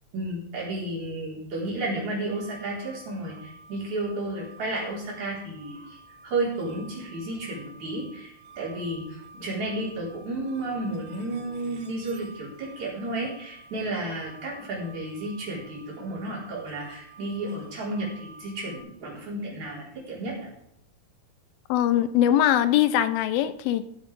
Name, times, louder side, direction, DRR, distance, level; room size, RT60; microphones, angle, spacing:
voice 1, 0.1-6.0 6.2-20.4, right 2 dB, 50° right, -5 dB, 5.7 m, -32 dB
sound 1, 2.3-18.8, right 2 dB, 80° right, 3.3 m, -50 dB
voice 2, 21.7-23.9, left 11 dB, 80° left, 14 dB, 2.4 m, -22 dB
16.0 x 7.9 x 5.2 m, 0.76 s
omnidirectional pair, 4.5 m